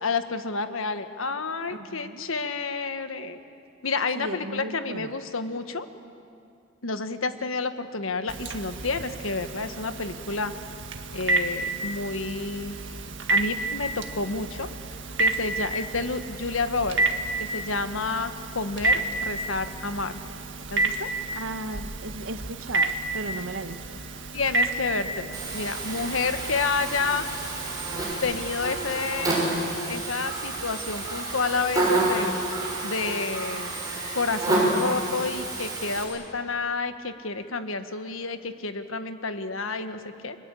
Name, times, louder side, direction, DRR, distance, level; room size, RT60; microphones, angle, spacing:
voice 1, 0.0-3.4 3.8-5.9 6.8-10.5 11.1-12.9 13.3-14.7 15.2-17.1 17.4-20.2 20.7-21.1 24.3-27.3 28.2-29.4 29.9-32.4 32.8-33.8 34.1-40.4, left 4 dB, 80° left, 9 dB, 1.5 m, -30 dB
voice 2, 1.7-2.3 4.1-5.2 21.3-24.0, right 2 dB, 75° right, 9 dB, 1.3 m, -36 dB
Telephone, 8.3-28.1, right 2 dB, 60° right, 1.9 m, -31 dB
Buzz, 25.3-36.0, right 2 dB, 20° right, 6.7 m, -29 dB
30.0 x 22.5 x 8.5 m, 2.5 s
head